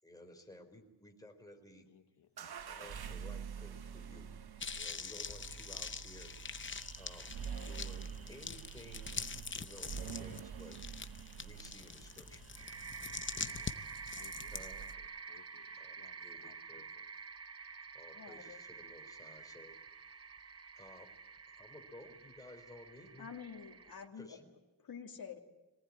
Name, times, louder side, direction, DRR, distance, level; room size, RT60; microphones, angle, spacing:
voice 1, 0.0-1.9 2.7-4.3 4.7-9.3 9.5-10.8 11.4-12.7 14.5-14.8 15.8-16.9 17.9-19.8 20.7-21.1 21.5-23.3 24.2-24.5, left 1 dB, 10° left, 3 dB, 4.1 m, -56 dB
voice 2, 1.9-2.4 13.3-13.9 14.1-17.1, left 8 dB, 70° left, 8 dB, 1.6 m, -65 dB
sound 1, 2.4-15.2, right 7 dB, 60° right, 1.1 m, -47 dB
sound 2, 4.6-14.9, left 5 dB, 25° left, 0.8 m, -44 dB
sound 3, 6.6-24.1, right 5 dB, 35° right, 0.9 m, -51 dB
voice 3, 18.1-18.6 23.2-24.4 24.8-25.4, left 7 dB, 55° left, 1 dB, 2.6 m, -48 dB
23.0 x 18.0 x 9.8 m, 1.1 s
wide cardioid pair, 125°, 43 cm